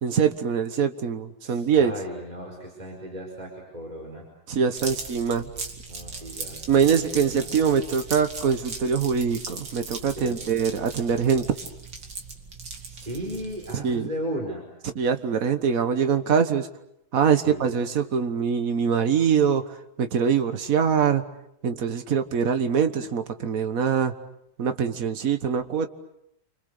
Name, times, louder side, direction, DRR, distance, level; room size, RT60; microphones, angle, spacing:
voice 1, 0.0-1.9 4.5-5.5 6.7-11.6 13.7-14.1 14.9-16.7 17.1-21.2 21.6-24.1 24.6-25.9, right 7 dB, 45° right, 9 dB, 1.6 m, -23 dB
voice 2, 1.4-4.3 5.9-7.7 10.2-10.4 12.9-14.7 17.4-17.6, equal, 20° right, 0 dB, 4.8 m, -36 dB
sound 1, 4.8-13.9, right 4 dB, 70° right, 3.1 m, -38 dB
29.5 x 25.5 x 6.7 m, 0.80 s
omnidirectional pair, 2.2 m